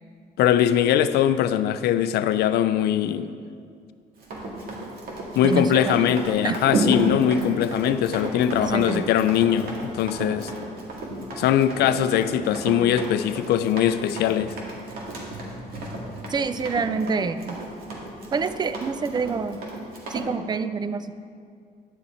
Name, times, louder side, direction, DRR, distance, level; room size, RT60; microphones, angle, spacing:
voice 1, 0.4-3.3 5.4-10.5 11.4-14.5, left 10 dB, 75° left, 12 dB, 0.5 m, -21 dB
Run, 4.2-20.3, right 1 dB, 60° right, 2.0 m, -32 dB
voice 2, 5.4-6.1 6.4-6.6 8.7-9.0 16.3-17.6 18.3-19.6 20.1-21.1, right 5 dB, 25° right, 12 dB, 0.4 m, -27 dB
10.5 x 7.0 x 4.3 m, 2.2 s
cardioid pair, 110°, 17 cm